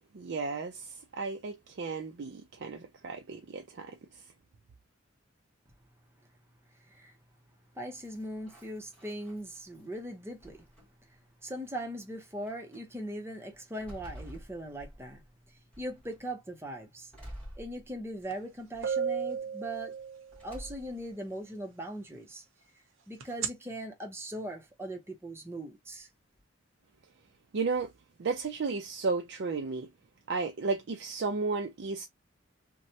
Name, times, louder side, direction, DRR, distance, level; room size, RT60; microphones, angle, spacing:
voice 1, 0.0-4.0 27.5-27.9 28.2-29.9 30.3-32.1, right 4 dB, 60° right, 0.4 m, -33 dB
voice 2, 7.7-10.7 11.4-15.2 15.8-17.1 17.6-19.9 20.4-22.4 23.1-26.1, right 1 dB, 15° right, 0.7 m, -40 dB
sound 1, 8.0-9.9 10.4-11.1 11.9-12.0 12.5-12.8 13.3-15.3 15.7-16.2 17.1-18.3 18.7-19.3 20.3-21.1, equal, 5° left, 1.4 m, -49 dB
sound 2, 18.3-18.4 18.8-20.6 23.2-23.5, right 7 dB, 90° right, 0.8 m, -33 dB
3.1 x 2.2 x 2.7 m
head